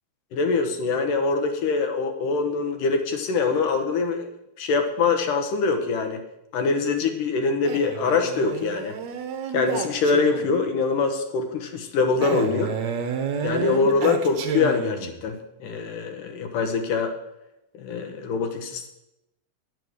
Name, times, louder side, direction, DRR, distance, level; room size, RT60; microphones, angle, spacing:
voice 1, 0.3-4.3 4.6-6.2 6.5-8.9 9.5-12.7 13.4-17.1 17.8-18.9, left 4 dB, 70° left, 5 dB, 2.3 m, -24 dB
Male speech man speaking, 7.6-10.7 12.2-15.2, right 7 dB, 65° right, 1.9 m, -30 dB
10.0 x 6.2 x 7.9 m, 0.90 s
omnidirectional pair, 4.2 m